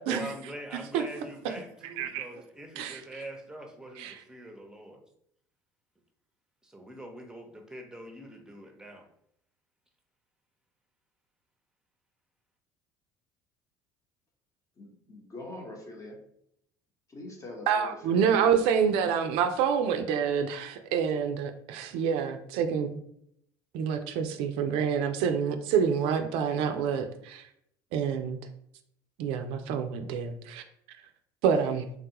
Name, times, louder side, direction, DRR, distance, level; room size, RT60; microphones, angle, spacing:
voice 1, 0.1-5.0 6.6-9.0, right 1 dB, 5° right, 3 dB, 0.7 m, -43 dB
voice 2, 2.0-2.3 2.8-3.0 4.0-4.2 17.7-23.0 23.7-27.5 27.9-28.4 29.2-30.6 31.4-31.9, right 7 dB, 70° right, 7 dB, 0.4 m, -27 dB
voice 3, 14.8-16.2 17.1-18.8, left 2 dB, 35° left, 1 dB, 1.0 m, -44 dB
3.5 x 2.2 x 2.8 m, 0.71 s
supercardioid pair, 80°, 10 cm